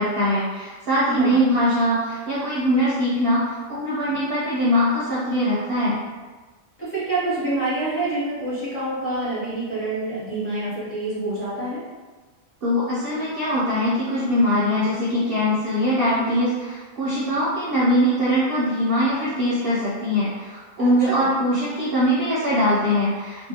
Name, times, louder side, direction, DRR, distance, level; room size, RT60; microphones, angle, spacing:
voice 1, 0.0-6.0 12.6-23.5, equal, 60° right, -8 dB, 0.6 m, -22 dB
voice 2, 1.1-1.4 6.8-11.8 20.8-21.2, right 2 dB, 15° left, -10 dB, 0.5 m, -27 dB
2.5 x 2.0 x 2.7 m, 1.3 s
omnidirectional pair, 1.4 m